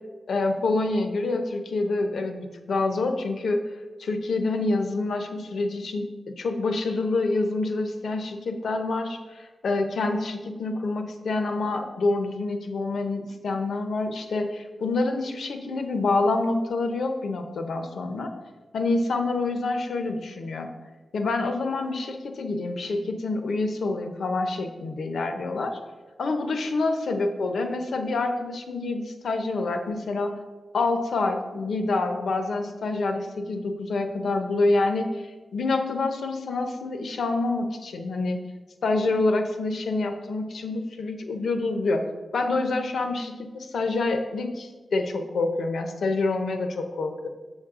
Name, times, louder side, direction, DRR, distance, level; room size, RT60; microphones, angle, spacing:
voice 1, 0.3-3.6 4.0-18.3 18.7-20.7 21.1-25.8 26.2-30.4 30.7-38.4 38.8-42.0 42.3-47.3, left 3 dB, 80° left, 5 dB, 0.8 m, -27 dB
7.1 x 6.3 x 3.7 m, 1.3 s
wide cardioid pair, 110°, 0 cm